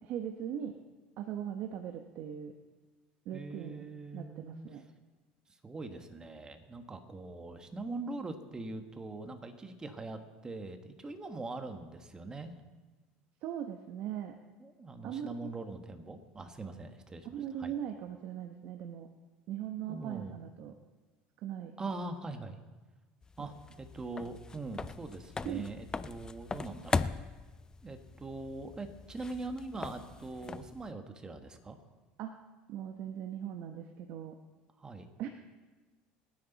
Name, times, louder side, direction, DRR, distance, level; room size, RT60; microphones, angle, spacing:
voice 1, 0.0-0.7 1.2-2.6 3.2-3.8 4.1-4.8 13.4-14.4 15.0-15.5 17.2-19.1 19.5-20.7 21.4-21.7 25.4-25.7 32.2-32.4 32.7-34.4 35.2-35.3, right 9 dB, 60° right, 4 dB, 1.1 m, -39 dB
voice 2, 3.3-4.7 5.5-12.5 14.6-17.7 19.9-20.4 21.8-22.6 23.4-27.0 27.8-31.8 34.8-35.3, right 3 dB, 20° right, 6 dB, 1.4 m, -42 dB
sound 1, 23.2-30.9, left 4 dB, 20° left, 0.4 m, -39 dB
26.5 x 10.0 x 4.1 m, 1.3 s
supercardioid pair, 115°, 4 cm